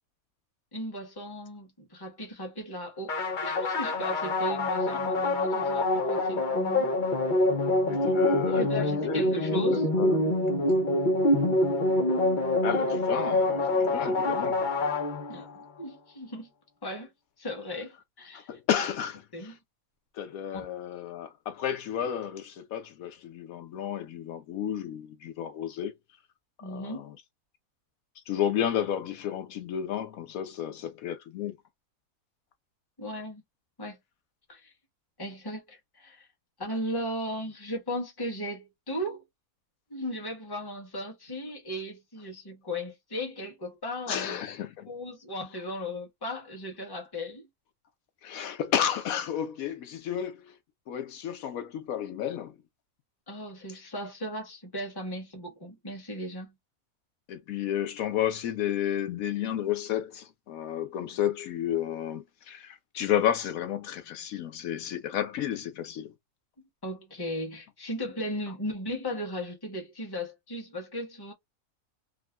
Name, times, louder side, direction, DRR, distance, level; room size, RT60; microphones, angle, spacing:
voice 1, 0.7-6.9 8.4-9.9 15.3-16.5 16.8-17.1 17.4-18.5 19.3-19.6 20.5-20.6 26.6-27.1 33.0-33.4 33.8-34.0 34.5-34.7 35.2-36.3 36.6-39.2 39.9-44.4 44.9-47.5 53.3-56.5 66.8-71.3, equal, 15° left, 1.0 m, -36 dB
sound 1, 3.1-15.6, left 2 dB, 50° left, 0.6 m, -26 dB
voice 2, 7.9-10.2 12.6-14.6 18.3-19.5 20.2-25.9 26.6-27.1 28.3-31.6 44.1-44.9 48.2-50.4 50.9-52.5 57.3-66.1, left 10 dB, 75° left, 1.0 m, -32 dB
3.6 x 2.1 x 2.2 m
omnidirectional pair, 1.5 m